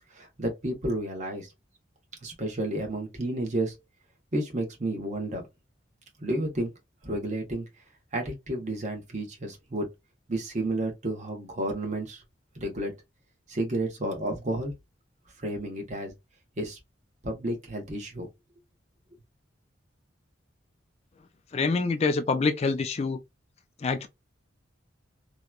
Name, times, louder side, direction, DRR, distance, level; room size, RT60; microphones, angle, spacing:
voice 1, 0.1-1.5 2.2-3.8 4.3-5.4 6.2-6.7 7.0-7.7 8.1-9.9 10.3-12.2 12.5-12.9 13.5-14.7 15.4-16.1 16.6-16.8 17.2-18.3, right 1 dB, 40° right, 0.9 m, -31 dB
voice 2, 21.5-23.2 23.8-24.1, left 4 dB, 35° left, 0.3 m, -26 dB
2.9 x 2.2 x 2.2 m
head